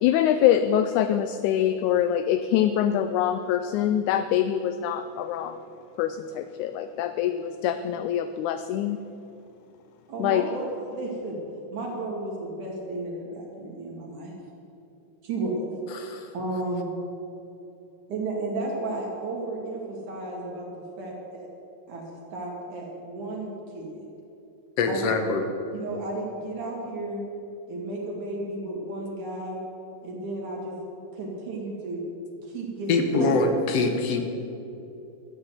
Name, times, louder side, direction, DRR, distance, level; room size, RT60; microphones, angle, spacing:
voice 1, 0.0-5.6 6.0-9.0 10.2-10.5, left 10 dB, 80° left, 10 dB, 1.8 m, -24 dB
voice 2, 10.1-11.4 11.7-14.3 15.2-15.7 16.3-16.9 18.1-20.7 21.0-21.5 21.9-22.0 22.3-24.1 24.8-25.3 25.7-27.2 27.7-29.6 30.0-30.8 31.1-32.1 32.4-33.4, right 2 dB, 65° right, -2 dB, 3.7 m, -33 dB
voice 3, 15.9-16.3 24.8-25.5 32.9-34.2, left 3 dB, 65° left, 5 dB, 1.7 m, -24 dB
13.0 x 8.8 x 8.0 m, 2.8 s
omnidirectional pair, 3.8 m